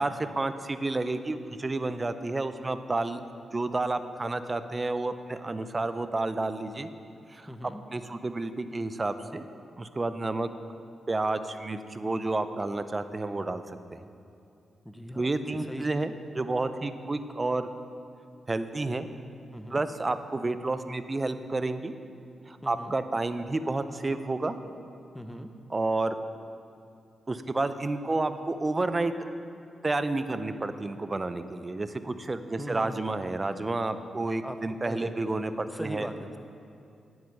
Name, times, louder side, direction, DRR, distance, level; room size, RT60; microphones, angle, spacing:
voice 1, 0.0-3.2 3.5-6.9 7.3-7.5 7.9-9.4 9.8-10.5 11.1-14.0 15.2-17.7 18.5-19.1 19.7-21.9 22.5-24.6 25.7-26.2 27.3-29.1 29.8-36.1, right 2 dB, 30° right, 11 dB, 0.6 m, -30 dB
voice 2, 7.5-7.8 14.8-15.8 19.5-19.8 22.6-23.0 25.1-25.5 32.6-33.0 34.4-34.6 34.8-35.1 35.7-36.4, equal, ahead, 7 dB, 0.8 m, -40 dB
9.4 x 7.9 x 5.3 m, 2.6 s
supercardioid pair, 50°, 0 cm